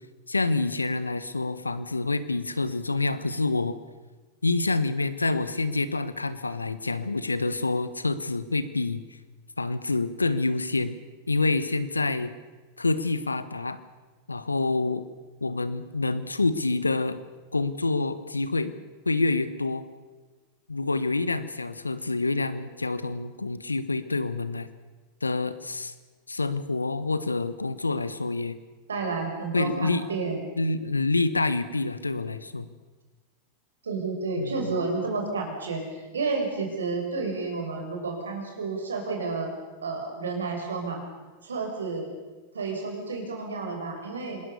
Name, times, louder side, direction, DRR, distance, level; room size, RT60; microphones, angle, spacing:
voice 1, 0.3-3.8 4.4-9.0 9.6-10.9 11.3-12.3 12.8-13.8 14.3-15.0 15.4-17.2 17.5-18.7 19.0-19.8 20.7-24.7 25.2-25.9 26.3-28.6 29.5-30.1 30.6-32.7 34.4-34.7, left 3 dB, 90° left, 14 dB, 1.2 m, -27 dB
voice 2, 28.9-30.4 33.8-39.5 39.8-41.0 41.4-42.1 42.5-44.4, right 4 dB, 80° right, 2 dB, 5.6 m, -31 dB
26.5 x 20.0 x 6.9 m, 1.3 s
figure-of-eight pair, 90°, 0 cm